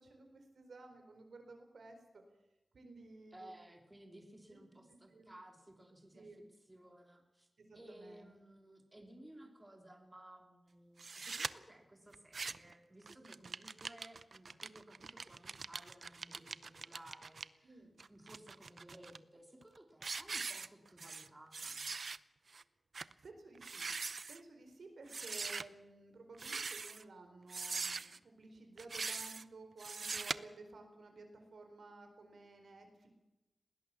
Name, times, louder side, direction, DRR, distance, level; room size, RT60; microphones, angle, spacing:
voice 1, 0.0-2.2 2.7-3.5 4.5-4.6 5.1-5.3 6.1-6.4 7.6-8.3 13.2-13.5 17.6-17.9 23.2-23.9 24.3-33.1, right 3 dB, 80° right, 5 dB, 4.6 m, -55 dB
voice 2, 3.3-6.3 6.7-7.5 7.7-17.8 18.1-21.9, right 1 dB, 15° right, 3 dB, 2.9 m, -58 dB
sound 1, 11.0-11.5 12.1-12.7 13.1-17.5 18.0-19.2 19.6-19.8 20.0-21.3 21.5-22.2 22.5-22.6 22.9-23.1 23.6-24.4 25.1-25.6 26.3-27.0 27.5-28.2 28.8-29.4 29.8-30.4, right 4 dB, 60° right, 0.6 m, -42 dB
20.5 x 18.0 x 7.2 m, 0.97 s
wide cardioid pair, 125°, 0 cm